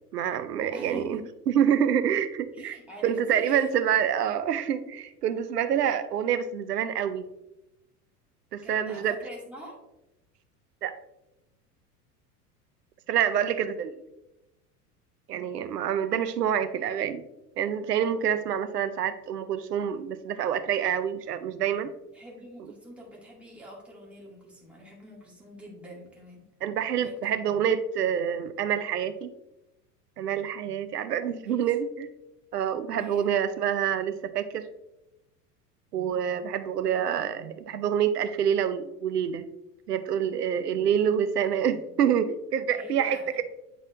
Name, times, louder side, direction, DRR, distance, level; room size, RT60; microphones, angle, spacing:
voice 1, 0.1-1.2 1.5-2.8 3.0-7.3 8.5-9.2 10.8-10.9 13.1-14.0 15.3-17.2 17.6-21.9 26.6-29.3 30.2-32.1 32.5-34.6 35.9-39.4 39.9-43.4, right 9 dB, 75° right, 11 dB, 0.6 m, -27 dB
voice 2, 0.7-1.2 2.5-3.9 8.6-9.8 22.1-26.4 26.9-27.5 31.5-31.7 33.0-33.3 41.4-41.6 42.8-43.4, equal, 5° right, -4 dB, 2.0 m, -45 dB
9.1 x 4.1 x 2.5 m, 0.91 s
figure-of-eight pair, 80°, 47 cm